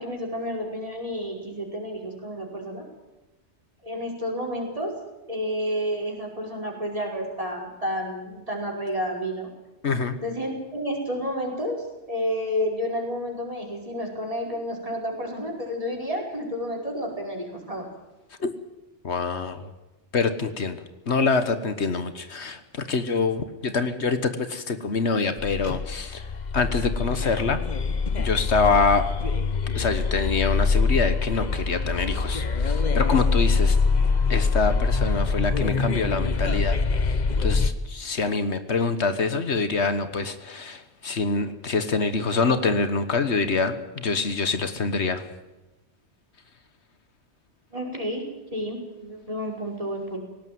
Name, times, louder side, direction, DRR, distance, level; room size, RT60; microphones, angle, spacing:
voice 1, 0.0-2.9 3.8-5.0 5.3-9.5 10.2-17.9 47.7-50.2, equal, 30° right, 0 dB, 5.3 m, -30 dB
voice 2, 9.8-10.1 18.4-18.5 19.0-19.7 20.1-20.8 21.1-26.2 26.5-27.6 28.2-29.1 29.7-33.8 34.3-36.8 37.4-45.3, left 4 dB, 70° left, 10 dB, 1.6 m, -25 dB
sound 1, 25.4-37.7, left 4 dB, 40° left, 1.1 m, -24 dB
18.5 x 17.5 x 9.4 m, 1.1 s
omnidirectional pair, 1.2 m